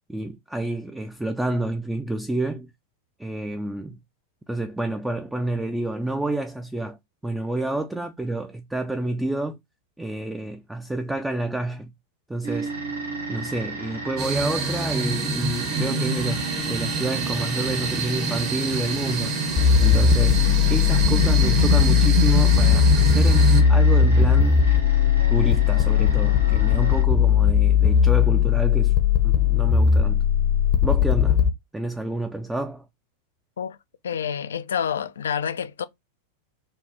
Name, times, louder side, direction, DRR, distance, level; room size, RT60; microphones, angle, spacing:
voice 1, 0.1-2.7 3.2-4.0 4.5-7.0 7.2-9.6 10.0-11.9 12.3-12.7 13.3-19.4 19.8-20.4 20.7-24.5 25.3-29.0 29.2-30.2 30.8-31.4 31.7-32.9, right 2 dB, 5° right, 0.4 m, -29 dB
sound 1, 12.4-27.0, right 2 dB, 75° right, 1.1 m, -34 dB
sound 2, 14.2-23.6, right 4 dB, 40° right, 1.1 m, -26 dB
sound 3, 19.6-31.5, left 7 dB, 30° left, 0.7 m, -18 dB
voice 2, 34.0-35.9, left 8 dB, 65° left, 0.3 m, -28 dB
5.2 x 2.3 x 2.8 m
figure-of-eight pair, 90°, 0 cm